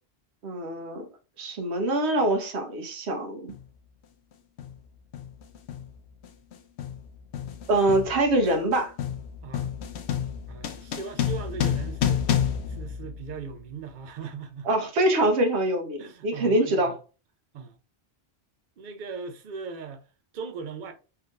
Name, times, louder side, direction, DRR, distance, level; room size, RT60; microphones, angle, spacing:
voice 1, 0.4-1.0 1.4-3.5 7.7-8.9 14.6-16.9, right 1 dB, 85° right, 1.1 m, -24 dB
sound 1, 3.5-3.7 4.6-4.9 5.1-13.7, left 9 dB, 80° left, 0.8 m, -30 dB
voice 2, 10.5-14.7 16.0-17.0 17.5-17.8 18.8-20.0 20.3-20.9, right 5 dB, 55° right, 0.7 m, -39 dB
3.4 x 2.8 x 2.3 m
omnidirectional pair, 1.1 m